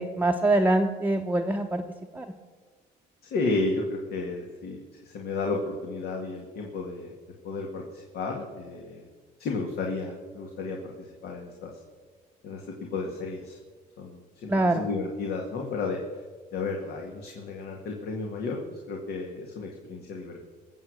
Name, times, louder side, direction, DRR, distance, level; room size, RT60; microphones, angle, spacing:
voice 1, 0.0-1.8 2.1-2.3 14.5-14.9, right 2 dB, 10° right, 1 dB, 0.8 m, -24 dB
voice 2, 3.3-7.1 7.4-9.0 9.4-11.7 12.4-13.6 14.0-16.2 16.5-20.5, left 3 dB, 70° left, 1 dB, 2.0 m, -33 dB
21.0 x 7.8 x 6.5 m, 1.4 s
cardioid pair, 110°, 17 cm